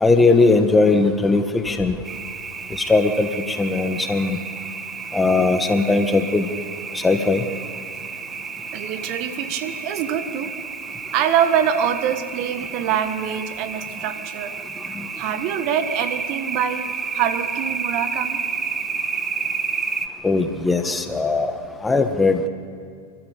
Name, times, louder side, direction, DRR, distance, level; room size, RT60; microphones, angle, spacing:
voice 1, 0.0-2.0 2.9-4.4 5.1-6.5 6.9-7.4 11.8-11.9 14.9-15.1 20.2-21.5 21.8-22.5, left 3 dB, 10° left, 7 dB, 1.6 m, -19 dB
sound 1, 2.1-20.1, right 5 dB, 25° right, 1.2 m, -31 dB
voice 2, 8.7-10.5 11.1-14.5 15.2-18.4, right 9 dB, 50° right, 11 dB, 1.4 m, -24 dB
29.0 x 12.5 x 8.4 m, 2.2 s
hypercardioid pair, 100°, 0 cm